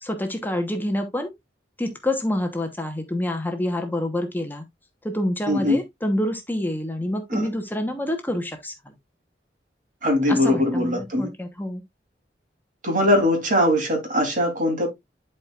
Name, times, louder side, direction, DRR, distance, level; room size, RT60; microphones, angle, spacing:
voice 1, 0.0-1.3 1.8-4.6 5.0-8.9 10.3-11.8, left 1 dB, 10° left, 1.0 m, -27 dB
voice 2, 5.5-5.8 7.3-7.5 10.0-11.3 12.8-14.9, left 1 dB, 50° right, 3.1 m, -21 dB
11.5 x 4.5 x 2.4 m
head